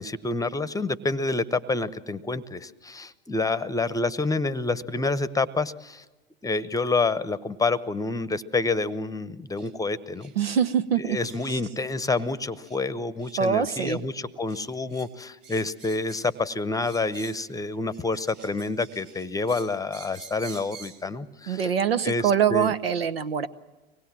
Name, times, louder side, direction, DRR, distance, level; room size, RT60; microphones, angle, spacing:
voice 1, 0.0-6.0 6.4-10.3 11.1-21.7 22.0-22.7, left 3 dB, 10° left, 16 dB, 0.9 m, -28 dB
sound 1, 9.6-9.7 10.2-10.3 10.6-10.7 11.2-11.6 12.0-12.3 12.6-12.8 13.2-13.4 13.7-14.0 14.5-15.1 15.4-16.4 16.8-17.5 17.9-21.0, right 6 dB, 55° right, 5.1 m, -48 dB
voice 2, 10.4-11.2 11.5-11.6 13.4-14.0 21.5-23.5, right 7 dB, 85° right, 13 dB, 0.9 m, -24 dB
24.5 x 19.5 x 7.5 m, 1.2 s
hypercardioid pair, 80°, 29 cm